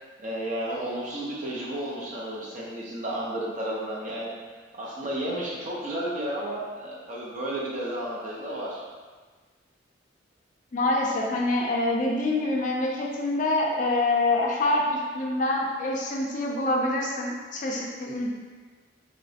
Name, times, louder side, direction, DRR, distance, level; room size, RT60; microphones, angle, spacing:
voice 1, 0.2-4.3 4.7-8.8, right 1 dB, 40° right, -5 dB, 0.6 m, -32 dB
voice 2, 10.7-18.3, left 2 dB, 40° left, -1 dB, 0.4 m, -26 dB
3.1 x 2.9 x 2.8 m, 1.4 s
head